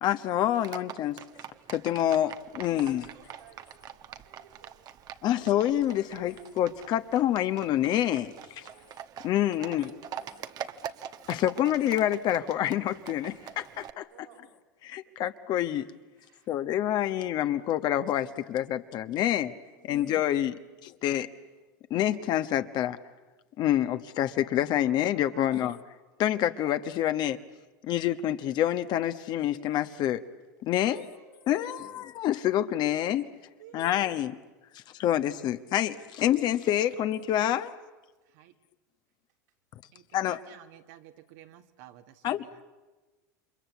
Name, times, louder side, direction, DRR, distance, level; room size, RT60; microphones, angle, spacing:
voice 1, 0.0-1.2 1.7-3.0 5.2-8.7 9.2-9.9 11.3-14.1 14.8-15.9 16.5-19.5 19.8-21.3 21.9-23.0 23.6-25.8 26.2-27.4 27.8-30.2 30.6-31.0 31.5-33.3 33.7-34.4 35.0-37.7 40.1-40.4 42.2-42.4, left 12 dB, 50° left, 10 dB, 1.2 m, -27 dB
Livestock farm animals working animals, 0.5-13.9, right 9 dB, 45° right, 1.1 m, -44 dB
voice 2, 2.5-4.8 6.0-6.5 8.4-8.9 9.3-10.9 11.6-11.7 13.9-14.5 15.0-15.1 16.2-16.5 19.7-20.1 25.3-25.6 30.7-32.0 33.6-34.0, right 7 dB, 85° right, 2 dB, 6.1 m, -55 dB
voice 3, 39.9-42.6, right 13 dB, 70° right, 8 dB, 1.8 m, -53 dB
29.0 x 24.5 x 8.3 m, 1.2 s
hypercardioid pair, 100°, 9 cm